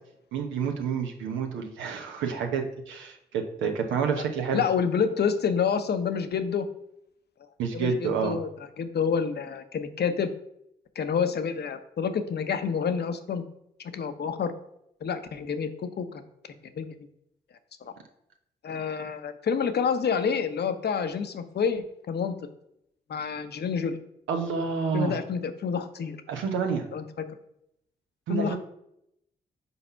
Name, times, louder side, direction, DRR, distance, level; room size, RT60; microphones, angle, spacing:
voice 1, 0.3-4.6 7.6-8.4 24.3-25.2 26.3-26.9 28.3-28.6, right 6 dB, 85° right, 3 dB, 1.0 m, -29 dB
voice 2, 4.5-6.7 7.7-8.5 8.8-10.3 11.0-13.4 13.9-14.5 15.0-16.2 16.7-16.9 18.6-22.3 23.1-24.0 24.9-26.2 26.9-27.0 28.3-28.6, left 6 dB, 60° left, 9 dB, 0.9 m, -28 dB
5.5 x 4.1 x 5.6 m, 0.78 s
supercardioid pair, 45°, 19 cm